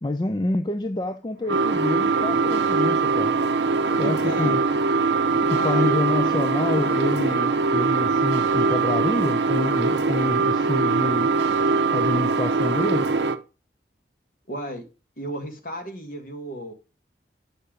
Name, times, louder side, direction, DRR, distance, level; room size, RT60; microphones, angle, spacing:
voice 1, 0.0-3.3 4.0-4.6 5.5-11.3 11.9-13.1, left 2 dB, 25° left, 0.5 m, -27 dB
sound 1, 1.5-13.4, right 4 dB, 80° right, 0.6 m, -22 dB
voice 2, 4.0-4.7 5.4-6.1 14.5-14.9 15.2-16.7, right 1 dB, 50° left, 1.8 m, -33 dB
8.3 x 5.7 x 5.1 m
head